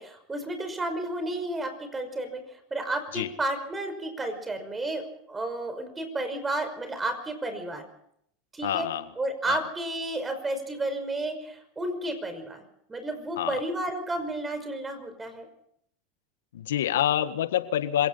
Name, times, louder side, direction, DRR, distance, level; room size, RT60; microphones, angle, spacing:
voice 1, 0.0-7.9 8.5-8.9 9.2-12.6 12.9-15.5, right 1 dB, 15° right, 8 dB, 5.6 m, -32 dB
voice 2, 8.6-9.0 9.5-9.6 13.4-13.5 16.5-18.1, left 11 dB, 80° left, 11 dB, 1.6 m, -26 dB
26.0 x 17.5 x 5.7 m, 0.73 s
hypercardioid pair, 100°, 0 cm